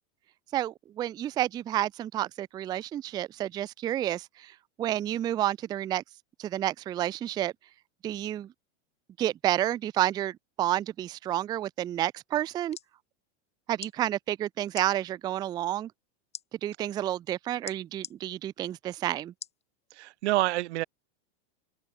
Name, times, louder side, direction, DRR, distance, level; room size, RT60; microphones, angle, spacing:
voice 1, 0.5-6.0 6.4-7.5 8.0-8.5 9.2-12.8 13.7-15.9 16.6-19.3, right 13 dB, 10° right, 0.4 m, -30 dB
sound 1, 12.5-12.9 13.7-13.9 14.7-14.9 16.3-16.5 17.7-18.2 19.4-19.6 20.2-20.3, left 9 dB, 20° left, 1.8 m, -41 dB
voice 2, 19.9-20.8, right 18 dB, 70° right, 0.8 m, -27 dB
open air
supercardioid pair, 160°, 35 cm